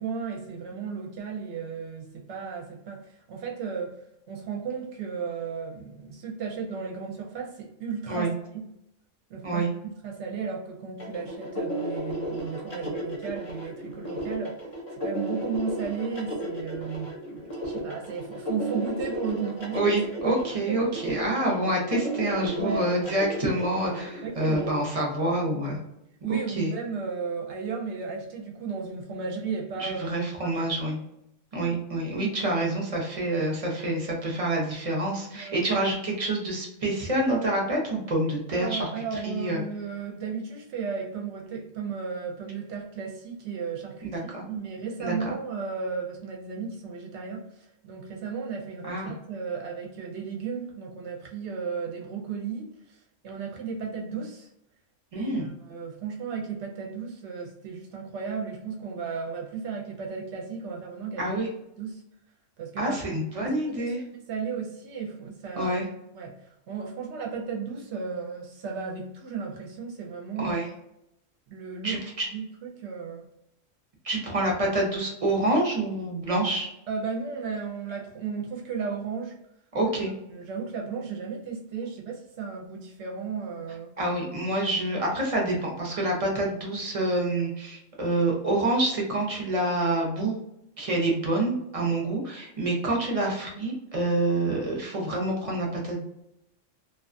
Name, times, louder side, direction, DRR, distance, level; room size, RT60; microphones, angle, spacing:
voice 1, 0.0-4.0 4.3-8.3 8.5-8.6 9.3-9.6 10.0-14.6 14.9-17.1 17.6-19.9 20.7-20.9 22.6-22.9 24.2-24.8 26.2-30.1 30.4-30.6 35.3-35.6 38.5-47.4 47.8-53.0 53.2-54.5 55.1-61.4 61.8-62.0 62.6-63.9 64.3-65.7 66.1-70.6 71.5-73.2 76.9-79.3 80.3-83.9, right 5 dB, 70° right, 0 dB, 0.8 m, -34 dB
sound 1, 11.0-24.7, equal, 40° left, 0.6 m, -34 dB
voice 2, 19.7-25.8 26.3-26.7 29.8-31.0 31.5-39.6 44.0-44.4 45.0-45.3 48.9-49.1 55.1-55.5 61.2-61.5 62.8-64.0 65.6-65.9 70.4-70.7 71.8-72.3 74.0-76.7 79.7-80.1 84.0-90.3 90.8-96.0, right 1 dB, 40° right, -1 dB, 0.6 m, -27 dB
2.3 x 2.3 x 2.5 m, 0.81 s
omnidirectional pair, 1.3 m